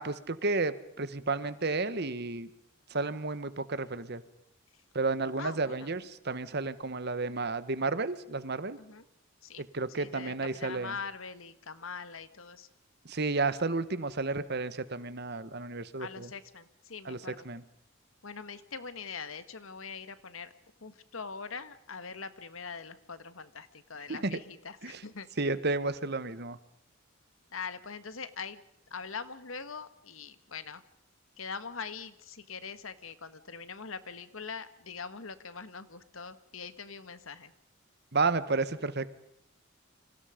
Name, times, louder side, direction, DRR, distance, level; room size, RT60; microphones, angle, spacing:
voice 1, 0.0-2.5 2.9-4.2 4.9-8.8 9.6-10.9 13.0-16.3 17.0-17.2 17.4-17.6 24.1-24.3 24.8-25.0 25.4-26.6 38.1-39.1, right 3 dB, 55° right, 14 dB, 1.3 m, -32 dB
voice 2, 5.4-5.9 8.8-9.1 9.4-9.6 10.0-12.7 16.0-17.4 18.2-20.5 20.8-25.3 27.5-28.6 28.9-30.8 31.4-37.5, left 5 dB, 80° left, 12 dB, 1.7 m, -42 dB
29.5 x 26.0 x 5.2 m, 0.73 s
head